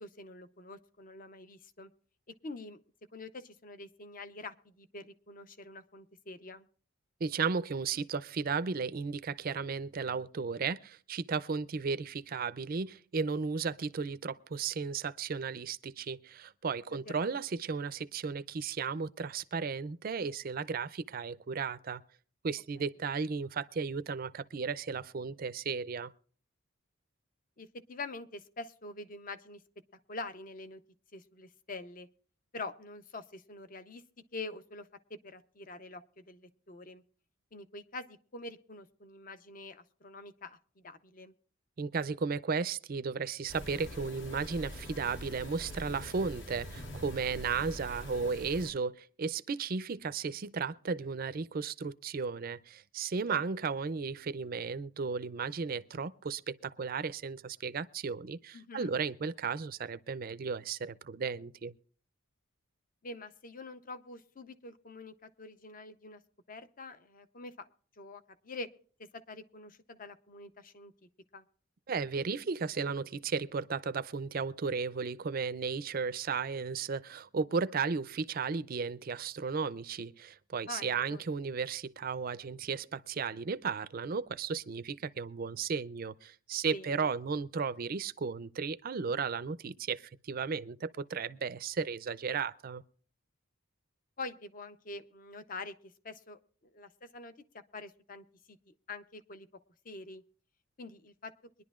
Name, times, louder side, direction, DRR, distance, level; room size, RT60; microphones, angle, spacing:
voice 1, 0.0-1.9 2.4-2.8 3.1-6.7 17.1-17.4 22.8-22.9 27.6-29.6 30.1-30.8 31.1-32.1 32.5-34.0 34.3-34.9 35.2-37.0 37.5-41.3 53.3-53.5 58.5-58.9 63.0-66.2 66.5-67.7 68.0-68.7 69.1-70.9 71.3-71.4 80.7-81.2 86.7-87.0 94.2-97.3 97.7-99.5 99.8-100.2 100.8-101.3, left 3 dB, 40° left, 0.7 m, -45 dB
voice 2, 7.2-22.0 22.4-26.1 41.8-61.7 71.9-92.8, right 5 dB, 45° right, 0.4 m, -35 dB
sound 1, 43.5-48.7, equal, 60° left, 1.5 m, -44 dB
23.0 x 11.0 x 2.4 m
head